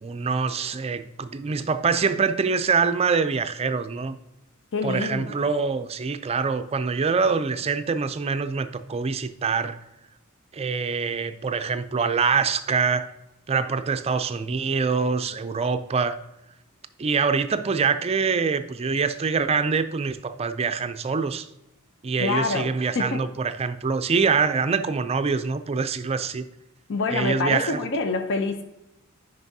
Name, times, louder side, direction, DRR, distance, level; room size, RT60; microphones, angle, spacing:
voice 1, 0.0-4.2 4.8-9.8 10.5-13.1 13.5-16.2 17.0-21.5 22.0-26.4 27.1-27.8, right 5 dB, 30° right, 11 dB, 0.4 m, -25 dB
voice 2, 4.7-5.4 22.2-22.7 22.9-23.2 26.9-28.6, left 3 dB, 60° left, 7 dB, 0.6 m, -26 dB
9.3 x 5.3 x 2.7 m, 0.92 s
head